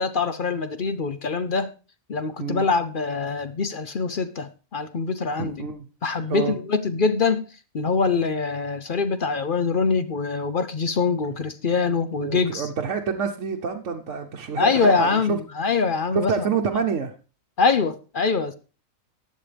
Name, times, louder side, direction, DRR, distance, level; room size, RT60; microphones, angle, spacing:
voice 1, 0.0-1.7 2.1-5.6 6.0-7.4 7.7-12.7 14.6-16.3 17.6-18.5, left 4 dB, 50° left, 0.7 m, -24 dB
voice 2, 5.4-5.9 6.3-6.6 12.2-15.4 16.1-17.1, right 6 dB, 60° right, 1.2 m, -27 dB
14.5 x 9.6 x 3.4 m
omnidirectional pair, 1.5 m